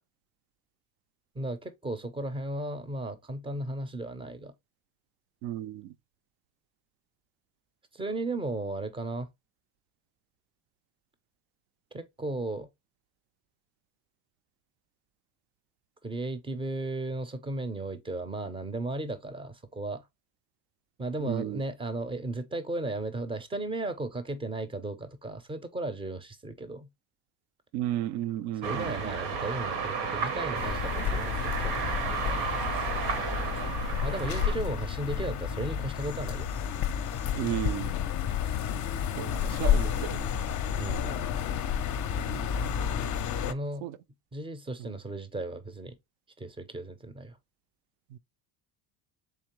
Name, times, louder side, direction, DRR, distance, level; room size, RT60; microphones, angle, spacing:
voice 1, 1.4-4.5 7.9-9.3 11.9-12.7 16.0-20.0 21.0-26.9 28.6-32.8 34.0-36.6 40.8-41.3 43.5-43.8 44.3-46.0 46.4-47.4, right 2 dB, 10° right, 0.5 m, -35 dB
voice 2, 5.4-5.9 21.2-21.6 27.7-29.2 33.4-33.8 37.4-37.9 39.1-40.3 42.3-42.6 43.8-44.0 44.8-44.9 48.1-48.2, right 13 dB, 60° right, 0.5 m, -34 dB
sound 1, 28.6-34.5, right 5 dB, 90° right, 1.1 m, -32 dB
sound 2, 30.5-43.5, left 8 dB, 40° left, 0.5 m, -31 dB
3.7 x 3.2 x 2.9 m
supercardioid pair, 100°, 44 cm